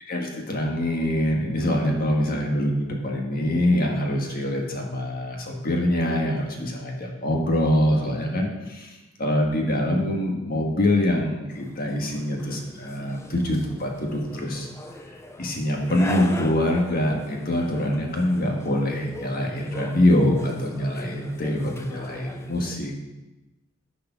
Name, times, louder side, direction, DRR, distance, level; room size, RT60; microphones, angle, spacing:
voice 1, 0.1-14.7 15.4-22.9, left 1 dB, 45° left, 0 dB, 1.6 m, -24 dB
sound 1, 11.5-22.8, left 1 dB, 15° left, 0.6 m, -40 dB
11.0 x 4.9 x 6.0 m, 1.1 s
head